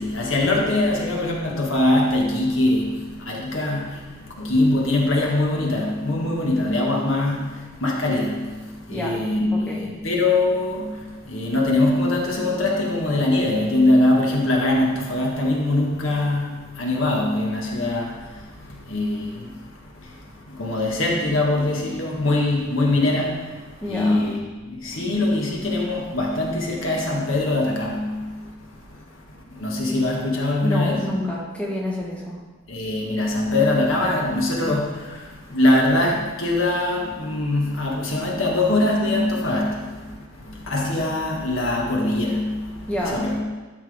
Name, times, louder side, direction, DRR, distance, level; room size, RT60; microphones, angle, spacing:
voice 1, 0.0-28.5 28.9-29.2 29.5-31.1 32.7-43.4, left 2 dB, 70° left, -2 dB, 1.7 m, -23 dB
voice 2, 8.9-9.2 9.5-9.9 23.8-24.3 30.6-32.4 42.9-43.3, equal, 5° left, -4 dB, 1.4 m, -28 dB
12.0 x 6.1 x 3.6 m, 1.2 s
head